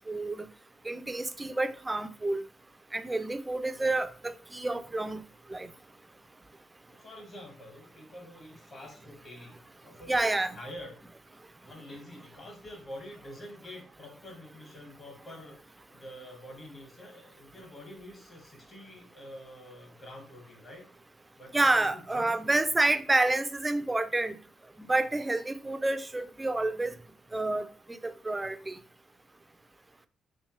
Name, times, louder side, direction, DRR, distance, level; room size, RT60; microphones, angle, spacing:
voice 1, 0.1-0.5 0.8-2.4 2.9-5.2 5.5-5.7 10.1-10.6 21.5-24.4 24.8-27.0 27.3-28.8, right 2 dB, 15° right, 0.3 m, -29 dB
voice 2, 6.9-11.0 11.6-20.8 21.4-22.5, left 1 dB, 45° left, 1.7 m, -47 dB
3.2 x 3.1 x 3.1 m
cardioid pair, 105°, 0 cm